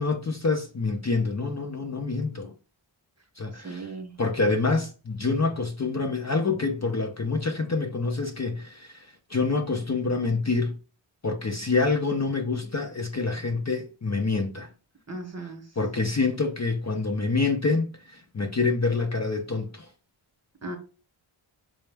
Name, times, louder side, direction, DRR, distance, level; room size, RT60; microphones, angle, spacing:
voice 1, 0.0-2.5 3.4-3.9 4.2-10.8 11.2-14.7 15.8-19.9, left 3 dB, 35° left, 0.5 m, -27 dB
voice 2, 3.5-4.2 15.1-15.7 20.6-20.8, right 2 dB, 30° right, 0.9 m, -37 dB
4.3 x 2.0 x 3.3 m
wide cardioid pair, 55°, 50 cm